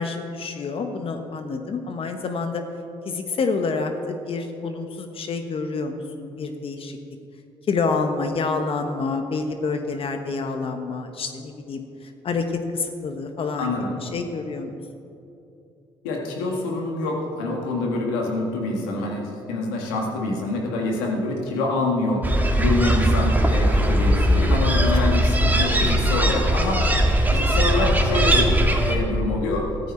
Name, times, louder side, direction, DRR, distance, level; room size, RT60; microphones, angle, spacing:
voice 1, 0.0-2.6 3.0-7.0 7.7-12.5 12.7-13.7 14.0-14.7, left 4 dB, 55° left, 6 dB, 1.1 m, -28 dB
voice 2, 13.6-14.0 16.0-22.2 22.6-26.8 27.3-28.6 28.9-29.7, left 2 dB, 90° left, 0 dB, 2.0 m, -26 dB
sound 1, 22.2-29.0, right 1 dB, 15° right, 1.8 m, -19 dB
14.0 x 13.5 x 4.4 m, 2.7 s
hypercardioid pair, 55°, 11 cm